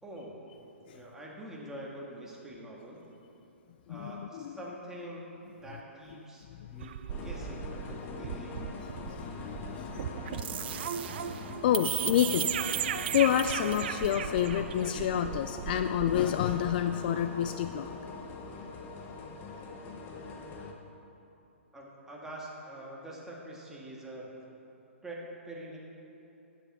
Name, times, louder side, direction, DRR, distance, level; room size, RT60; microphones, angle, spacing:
voice 1, 0.0-0.4 0.9-3.0 3.9-5.3 5.6-6.9 7.2-8.6 21.7-24.3 25.0-25.8, right 1 dB, 5° right, -4 dB, 1.7 m, -45 dB
voice 2, 3.9-4.5 6.5-6.7 9.0-10.0 11.6-12.5 13.1-17.9, left 10 dB, 45° left, 9 dB, 0.3 m, -29 dB
sound 1, 6.8-16.9, right 10 dB, 50° right, 0.4 m, -36 dB
sound 2, 7.1-20.7, left 4 dB, 25° left, 0.9 m, -42 dB
11.0 x 8.6 x 4.3 m, 3.0 s
figure-of-eight pair, 130°, 7 cm